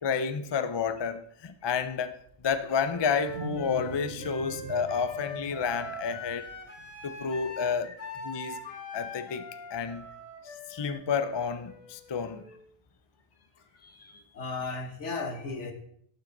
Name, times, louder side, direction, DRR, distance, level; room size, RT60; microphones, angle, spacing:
voice 1, 0.0-2.2 2.4-6.5 7.0-7.9 8.2-8.6 8.9-10.1 10.7-12.4, left 6 dB, 35° left, 0.4 m, -30 dB
Wild animals, 2.3-7.3, right 4 dB, 55° right, 1.1 m, -43 dB
Wind instrument woodwind instrument, 2.9-12.7, left 2 dB, 60° left, 1.9 m, -42 dB
voice 2, 8.5-8.8 13.8-15.7, left 3 dB, 90° left, 1.6 m, -37 dB
18.5 x 6.3 x 3.9 m
omnidirectional pair, 1.2 m